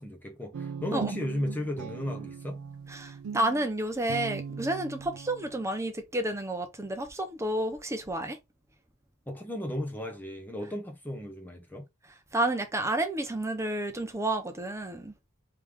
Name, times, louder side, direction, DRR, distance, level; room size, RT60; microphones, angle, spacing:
voice 1, 0.0-2.6 9.3-11.8, left 1 dB, 10° left, 0.9 m, -35 dB
Guitar, 0.5-5.7, right 6 dB, 75° right, 0.4 m, -39 dB
voice 2, 2.9-8.4 12.1-15.1, right 1 dB, 15° right, 0.7 m, -30 dB
3.4 x 3.2 x 3.5 m
head